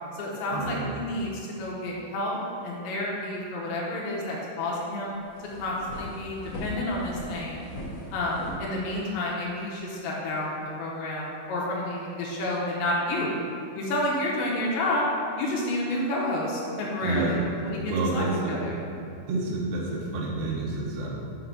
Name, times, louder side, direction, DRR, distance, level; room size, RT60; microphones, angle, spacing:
voice 1, 0.1-2.4 2.6-5.1 5.6-7.7 8.1-13.3 13.7-15.1 15.4-17.4 17.7-18.8, left 1 dB, 75° left, -4 dB, 3.0 m, -30 dB
sound 1, 5.1-9.3, left 1 dB, 60° left, 2.2 m, -39 dB
voice 2, 17.0-17.4 17.9-18.6 19.3-21.1, right 3 dB, 90° right, -3 dB, 2.0 m, -28 dB
6.9 x 3.9 x 5.8 m, 2.5 s
omnidirectional pair, 5.4 m